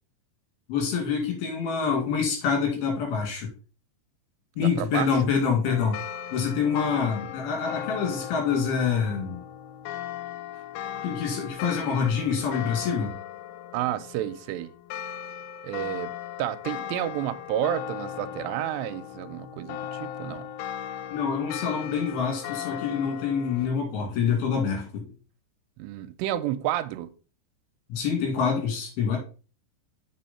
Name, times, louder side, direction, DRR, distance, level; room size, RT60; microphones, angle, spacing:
voice 1, 0.7-3.5 4.6-6.0 6.3-9.4 11.0-13.1 21.1-25.1 27.9-29.2, left 6 dB, 65° left, 4.1 m, -26 dB
voice 2, 4.6-5.1 13.7-14.7 15.6-20.5 25.8-27.1, right 12 dB, 90° right, 2.8 m, -30 dB
sound 1, 5.6-23.7, left 10 dB, 90° left, 3.0 m, -37 dB
7.7 x 5.8 x 4.2 m
omnidirectional pair, 4.9 m